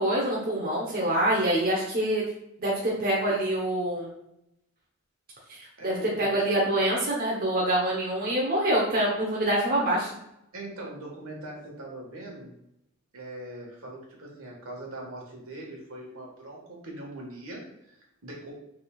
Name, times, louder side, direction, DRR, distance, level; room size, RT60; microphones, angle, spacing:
voice 1, 0.0-2.2 2.6-4.1 5.6-10.1, right 1 dB, 40° right, -4 dB, 1.0 m, -25 dB
voice 2, 5.8-6.3 10.5-12.5 13.1-18.5, right 1 dB, 70° right, -2 dB, 1.6 m, -41 dB
6.1 x 3.6 x 2.4 m, 0.81 s
head